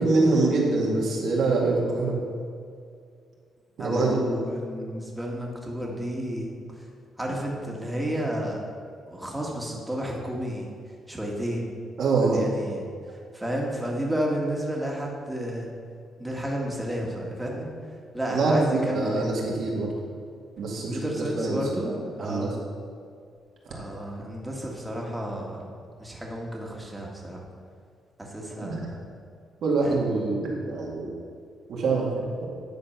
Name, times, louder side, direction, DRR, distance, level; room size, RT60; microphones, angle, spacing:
voice 1, 0.0-2.2 3.8-4.2 12.0-12.5 18.3-19.9 20.6-22.5 28.6-28.7 29.6-31.1 31.7-32.5, right 3 dB, 70° right, -3 dB, 2.1 m, -25 dB
voice 2, 3.8-6.5 7.2-8.6 9.1-10.7 11.1-11.7 12.3-12.8 13.3-15.7 16.2-17.7 18.1-19.4 20.8-22.6 23.7-25.6 26.0-27.4 28.2-29.0 29.8-30.0, equal, 10° right, -2 dB, 1.8 m, -31 dB
10.5 x 4.3 x 5.7 m, 2.3 s
cardioid pair, 90°, 0 cm